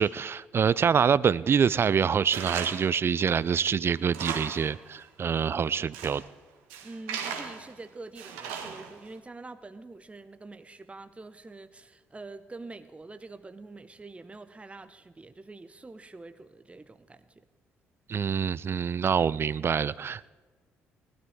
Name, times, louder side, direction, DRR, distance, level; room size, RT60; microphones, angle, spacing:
voice 1, 0.0-6.2 18.1-20.3, right 7 dB, 40° right, 20 dB, 0.4 m, -25 dB
Tools, 2.3-2.9 3.3-3.4 3.9-4.8 5.0-5.1 5.7-6.3 6.7-7.7 8.2-9.1, right 7 dB, 75° right, 1.3 m, -37 dB
voice 2, 6.8-17.4, right 3 dB, 20° right, 10 dB, 0.8 m, -45 dB
19.5 x 12.5 x 3.7 m, 1.3 s
hypercardioid pair, 45°, 6 cm